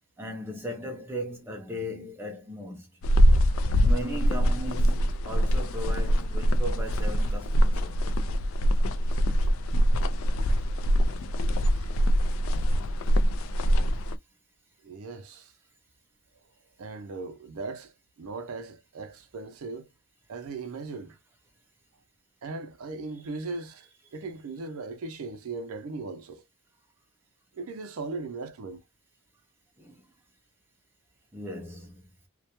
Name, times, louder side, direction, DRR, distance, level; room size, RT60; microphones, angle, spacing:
voice 1, 0.2-2.9 3.8-8.1 29.8-30.0 31.3-32.0, equal, 10° right, 0.5 m, -37 dB
sound 1, 3.0-14.2, equal, 65° left, 0.3 m, -23 dB
voice 2, 14.8-15.5 16.8-17.9 18.2-19.9 20.3-21.2 22.4-23.9 24.1-26.4 27.6-28.8, right 3 dB, 75° right, 0.4 m, -38 dB
2.2 x 2.1 x 2.8 m
head